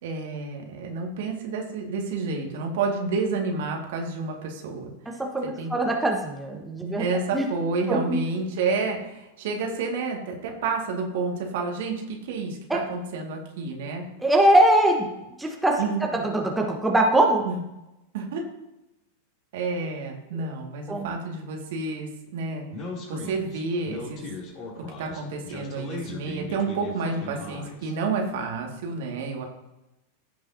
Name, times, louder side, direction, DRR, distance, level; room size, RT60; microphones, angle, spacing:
voice 1, 0.0-4.9 5.6-5.7 6.8-14.0 15.8-16.0 17.4-17.6 18.1-18.4 19.5-22.7 23.1-24.3 25.0-29.4, right 4 dB, 55° right, 1 dB, 2.1 m, -29 dB
voice 2, 5.2-7.0 7.3-7.4 7.9-8.2 12.7-12.8 14.2-15.1 15.4-15.8 16.1-17.4 20.9-21.1, right 1 dB, 5° right, 0 dB, 1.3 m, -22 dB
Speech, 22.7-27.9, left 2 dB, 35° left, 3.1 m, -38 dB
16.0 x 6.2 x 2.8 m, 0.92 s
figure-of-eight pair, 90°, 0 cm